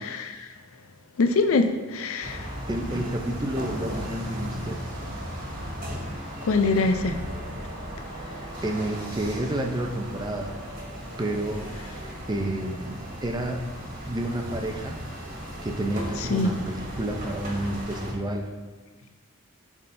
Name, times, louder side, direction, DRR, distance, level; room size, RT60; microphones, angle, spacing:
voice 1, 1.2-2.4 6.4-7.1 16.3-16.5, left 3 dB, 65° left, 7 dB, 0.5 m, -23 dB
sound 1, 2.2-18.1, equal, 40° right, 1.6 m, -36 dB
voice 2, 2.7-4.8 8.4-10.5 11.2-13.6 14.1-15.0 15.6-18.5, right 1 dB, 20° right, 3 dB, 0.5 m, -30 dB
11.0 x 3.6 x 2.6 m, 1.3 s
head